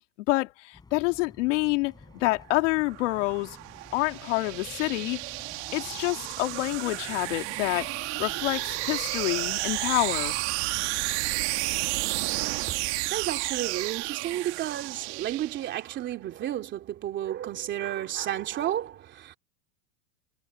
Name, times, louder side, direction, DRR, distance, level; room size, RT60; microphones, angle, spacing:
voice 1, 0.3-3.6 3.9-5.2 5.7-10.4, left 22 dB, 55° left, 2.3 m, -27 dB
sound 1, 0.7-11.4, left 4 dB, 10° left, 6.8 m, -52 dB
sound 2, 2.5-16.0, right 23 dB, 50° right, 1.9 m, -32 dB
voice 2, 12.7-19.4, right 12 dB, 25° right, 2.8 m, -32 dB
supercardioid pair, 160°, 44 cm